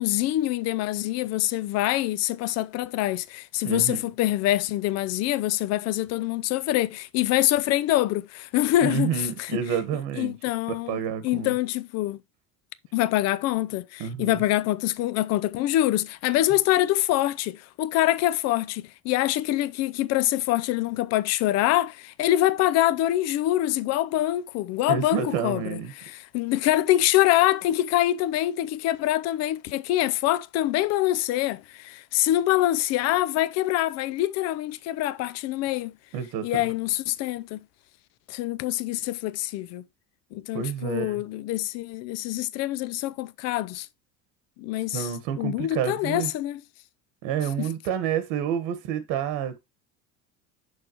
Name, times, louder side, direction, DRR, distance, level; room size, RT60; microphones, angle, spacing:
voice 1, 0.0-9.5 10.2-11.0 11.2-12.2 12.9-35.9 36.4-37.6 38.3-39.8 40.3-43.9 44.6-45.1 45.4-46.6 47.6-47.7, left 15 dB, 50° left, 0.5 m, -25 dB
voice 2, 3.6-4.1 8.8-10.3 10.7-11.5 14.0-14.4 24.9-25.9 36.1-36.7 40.5-41.2 44.9-46.3 47.2-49.6, right 8 dB, 75° right, 1.3 m, -29 dB
6.4 x 6.3 x 2.9 m
cardioid pair, 145°, 33 cm